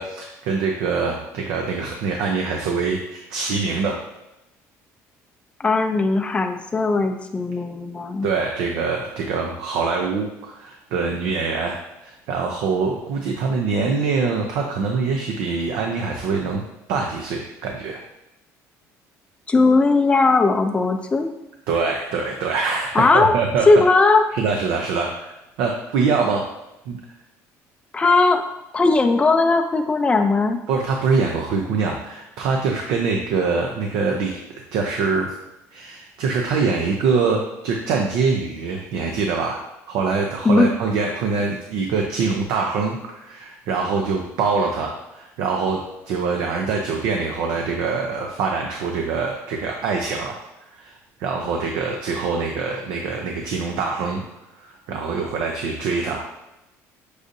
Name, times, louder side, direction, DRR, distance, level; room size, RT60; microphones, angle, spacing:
voice 1, 0.0-4.0 8.2-16.6 16.9-18.0 21.7-23.7 24.3-26.4 26.9-27.0 30.7-34.3 34.7-35.3 35.7-39.6 39.9-45.8 46.1-50.4 50.8-50.9 51.2-54.2 54.9-56.2, right 4 dB, 80° right, 1 dB, 0.5 m, -24 dB
voice 2, 5.6-8.3 19.5-21.3 22.9-23.4 23.7-24.2 27.9-28.4 28.7-30.6 40.4-40.7, left 3 dB, 20° left, 5 dB, 0.4 m, -18 dB
6.3 x 2.5 x 2.6 m, 0.94 s
cardioid pair, 120°, 6 cm